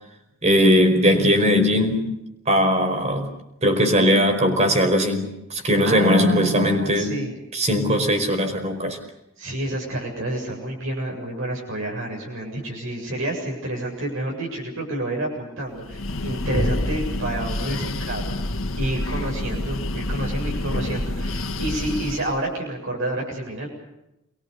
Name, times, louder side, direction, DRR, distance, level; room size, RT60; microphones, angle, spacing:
voice 1, 0.4-2.1 2.5-3.3 3.6-7.2 7.5-9.0, equal, 30° right, 6 dB, 5.0 m, -19 dB
voice 2, 5.8-7.3 9.4-18.4 18.8-23.7, right 2 dB, 70° right, -1 dB, 7.5 m, -29 dB
Breathing, 15.8-22.4, left 1 dB, 75° left, 1.9 m, -27 dB
29.0 x 23.0 x 6.8 m, 0.90 s
head